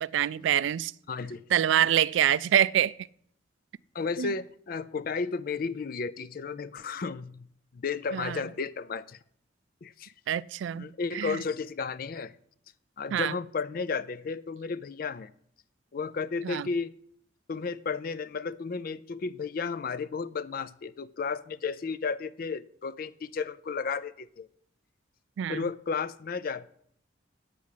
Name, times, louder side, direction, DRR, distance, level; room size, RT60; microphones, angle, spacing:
voice 1, 0.0-0.9 1.5-3.0 4.2-4.3 8.1-8.4 10.3-10.9 11.1-11.4 13.1-13.3 16.4-16.7 25.4-25.6, right 10 dB, 70° right, 0.3 m, -25 dB
voice 2, 1.1-1.4 3.9-7.5 7.7-9.2 9.8-10.1 10.7-12.3 13.0-15.3 15.9-16.9 17.5-24.5 25.5-26.7, left 5 dB, 50° left, 0.4 m, -33 dB
8.4 x 6.1 x 8.2 m
head